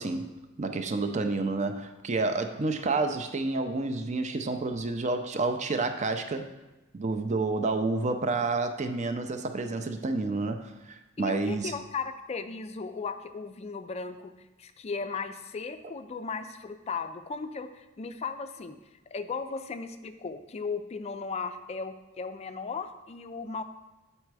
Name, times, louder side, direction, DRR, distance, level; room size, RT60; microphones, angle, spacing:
voice 1, 0.0-6.5 6.9-11.7, right 3 dB, 35° right, 7 dB, 0.5 m, -29 dB
voice 2, 11.2-14.3 14.6-18.8 19.1-23.6, left 4 dB, 30° left, 9 dB, 0.4 m, -36 dB
7.7 x 4.2 x 4.7 m, 1.1 s
head